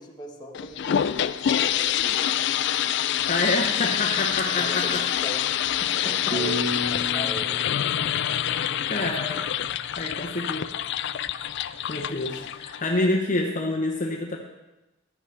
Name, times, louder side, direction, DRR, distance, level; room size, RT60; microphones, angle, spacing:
voice 1, 0.0-2.3 4.6-5.5 6.0-7.9, equal, 20° left, 0 dB, 1.3 m, -39 dB
sound 1, 0.5-13.1, left 10 dB, 60° left, 0.4 m, -26 dB
voice 2, 3.3-5.0 5.8-6.4 8.9-9.7 10.0-10.7 11.9-14.4, left 2 dB, 40° left, 1 dB, 1.0 m, -27 dB
sound 2, 6.3-9.3, left 1 dB, 40° right, 2.6 m, -33 dB
14.5 x 11.0 x 3.4 m, 1.0 s
head